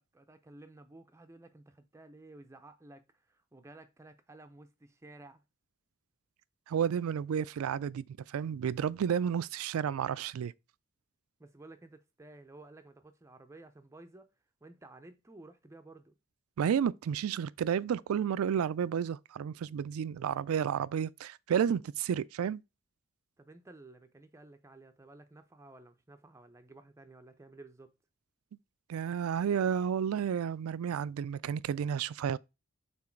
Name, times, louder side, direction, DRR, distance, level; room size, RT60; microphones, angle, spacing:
voice 1, 0.0-5.4 11.4-14.3 14.6-16.1 23.4-27.9, right 2 dB, 15° right, 0.4 m, -54 dB
voice 2, 6.7-10.5 16.6-22.6 28.9-32.4, right 8 dB, 85° right, 0.3 m, -31 dB
6.1 x 3.9 x 4.4 m
head